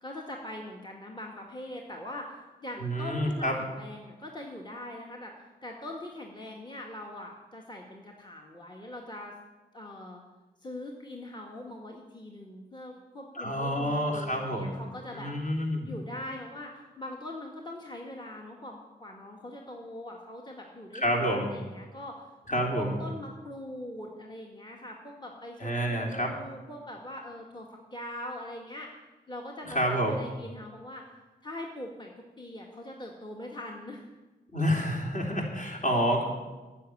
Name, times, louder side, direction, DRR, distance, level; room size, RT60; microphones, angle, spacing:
voice 1, 0.0-9.3 9.7-10.2 10.6-28.9 29.3-31.0 31.4-32.1 32.4-34.0, left 1 dB, 25° left, 0 dB, 1.9 m, -42 dB
voice 2, 2.8-3.5 13.4-14.7 15.1-15.9 20.9-21.5 22.5-22.9 25.6-26.3 29.7-30.2 34.5-36.2, equal, 45° left, 0 dB, 3.5 m, -28 dB
10.5 x 7.5 x 9.5 m, 1.2 s
cardioid pair, 45°, 18 cm